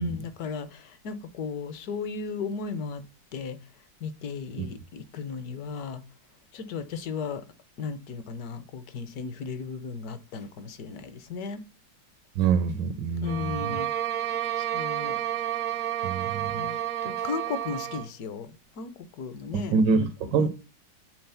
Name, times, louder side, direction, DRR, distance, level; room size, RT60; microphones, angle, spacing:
voice 1, 0.0-3.0 3.3-3.6 4.0-6.0 6.5-7.4 7.8-11.6 13.2-13.9 14.6-15.2 16.5-19.8 20.4-20.5, left 5 dB, 65° left, 1.2 m, -35 dB
voice 2, 12.4-13.8 16.0-16.7 19.5-20.5, right 5 dB, 85° right, 1.4 m, -26 dB
sound 1, 13.2-18.1, right 11 dB, 65° right, 0.9 m, -30 dB
7.9 x 3.6 x 5.6 m
omnidirectional pair, 1.9 m